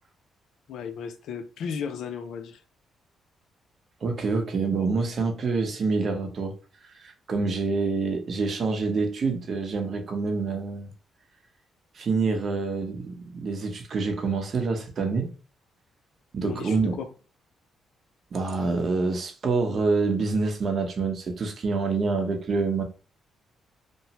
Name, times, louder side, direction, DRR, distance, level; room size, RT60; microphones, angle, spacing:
voice 1, 0.7-2.6 16.4-17.1, left 6 dB, 75° left, 0.4 m, -35 dB
voice 2, 4.0-6.5 6.8-10.9 11.9-15.3 16.3-16.9 18.3-22.8, right 4 dB, 50° right, 0.7 m, -26 dB
3.0 x 2.1 x 2.8 m
cardioid pair, 90°, 0 cm